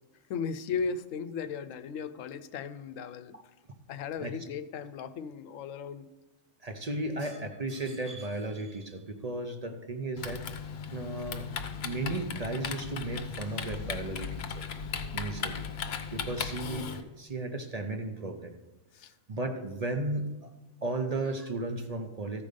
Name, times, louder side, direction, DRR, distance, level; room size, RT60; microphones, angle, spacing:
voice 1, 0.3-3.4 3.9-6.1 18.9-19.1, left 6 dB, 85° left, 1.0 m, -36 dB
voice 2, 6.6-10.4 10.9-11.5 11.7-14.4 15.1-15.7 16.1-16.9 17.2-18.5 19.3-20.3 20.8-22.4, right 2 dB, 40° right, 0.7 m, -34 dB
Typing, 10.2-17.0, left 6 dB, 60° left, 0.9 m, -37 dB
13.5 x 5.2 x 5.2 m
omnidirectional pair, 1.3 m